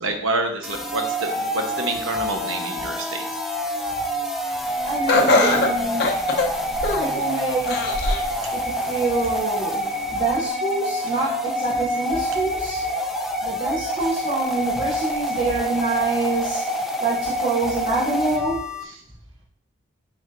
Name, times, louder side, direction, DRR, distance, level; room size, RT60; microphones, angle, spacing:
voice 1, 0.0-3.1 18.9-19.0, right 2 dB, 85° right, 4 dB, 1.0 m, -27 dB
sound 1, 0.6-18.8, equal, ahead, 0.6 m, -27 dB
voice 2, 4.9-6.1 7.0-7.8 8.5-8.6 8.9-9.8 10.1-12.8 13.4-16.6 17.0-18.6, right 3 dB, 45° right, -11 dB, 2.9 m, -26 dB
Laughter, 5.1-7.2 7.7-8.3 8.8-8.9 9.9-10.0, left 2 dB, 50° left, 0.8 m, -21 dB
9.4 x 4.8 x 2.6 m, 0.66 s
head